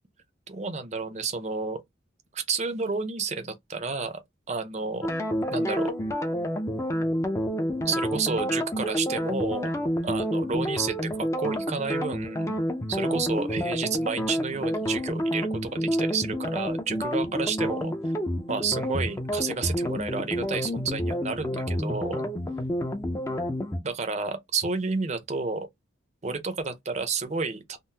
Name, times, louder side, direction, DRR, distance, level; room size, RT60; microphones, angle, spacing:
voice 1, 0.5-1.8 2.3-4.2 4.5-5.1 5.5-5.9 7.8-9.7 10.0-12.5 12.9-17.9 18.5-22.2 23.8-25.7 26.2-27.8, right 4 dB, 35° right, 0.5 m, -31 dB
sound 1, 5.0-23.8, equal, 15° left, 0.4 m, -29 dB
3.6 x 2.0 x 2.7 m
head